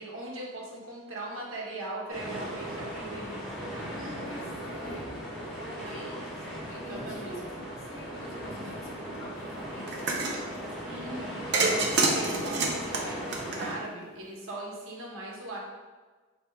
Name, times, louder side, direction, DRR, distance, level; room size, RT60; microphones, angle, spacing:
voice 1, 0.0-4.4 5.8-5.9 6.9-7.4 10.8-15.6, right 2 dB, 80° right, -3 dB, 0.9 m, -40 dB
sound 1, 2.1-13.7, equal, ahead, 1.4 m, -38 dB
voice 2, 4.2-5.0 5.4-6.2 6.5-7.4 7.7-10.5 10.9-11.6, left 1 dB, 75° left, -4 dB, 0.9 m, -47 dB
sound 2, 9.9-10.4 11.5-14.0, right 3 dB, 55° right, 0.5 m, -27 dB
4.6 x 2.8 x 2.2 m, 1.3 s
head